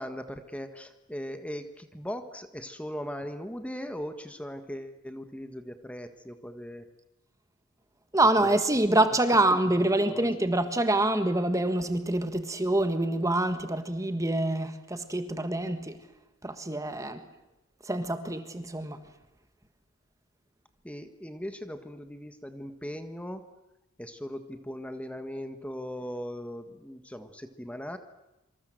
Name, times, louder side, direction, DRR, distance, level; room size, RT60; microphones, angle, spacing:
voice 1, 0.0-6.8 8.4-8.6 8.9-9.0 9.3-9.4 10.1-10.5 20.8-23.4 24.0-28.0, equal, 5° left, 1.6 m, -39 dB
voice 2, 8.1-16.0 16.4-17.2 17.8-19.0, right 1 dB, 15° right, 1.6 m, -26 dB
27.0 x 25.5 x 7.8 m
head